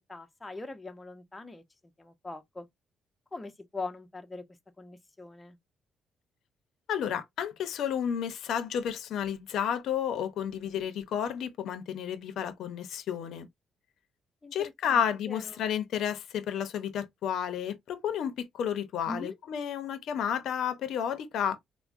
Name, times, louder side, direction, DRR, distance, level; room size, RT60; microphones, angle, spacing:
voice 1, 0.1-1.6 2.0-2.7 3.3-4.4 4.8-5.6 14.4-15.6 19.1-19.4, left 3 dB, 20° left, 0.6 m, -42 dB
voice 2, 6.9-13.5 14.5-21.6, left 8 dB, 75° left, 0.6 m, -31 dB
4.5 x 2.1 x 2.5 m
cardioid pair, 90°, 0 cm